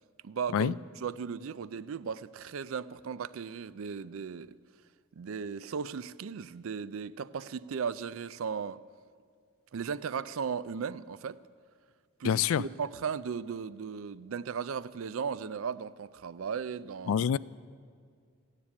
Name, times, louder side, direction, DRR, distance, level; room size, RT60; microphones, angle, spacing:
voice 1, 0.2-4.6 5.2-8.8 9.7-11.4 12.2-17.3, right 6 dB, 70° right, 0.4 m, -36 dB
voice 2, 12.2-12.6 17.1-17.4, left 8 dB, 70° left, 0.3 m, -26 dB
15.0 x 9.9 x 8.5 m
head